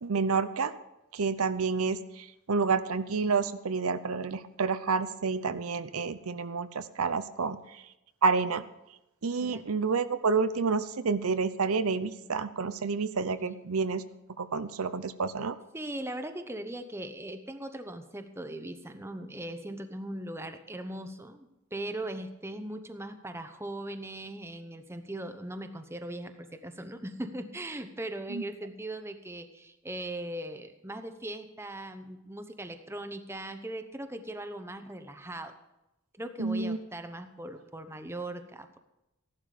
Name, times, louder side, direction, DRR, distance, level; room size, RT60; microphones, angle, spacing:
voice 1, 0.0-0.7 1.1-7.8 8.2-8.6 9.2-14.0 14.4-15.6 28.3-28.4 36.4-36.8, right 4 dB, 90° right, 12 dB, 0.7 m, -29 dB
voice 2, 15.7-35.5 36.2-38.8, right 1 dB, 10° right, 8 dB, 0.9 m, -39 dB
15.5 x 11.5 x 5.1 m, 0.93 s
head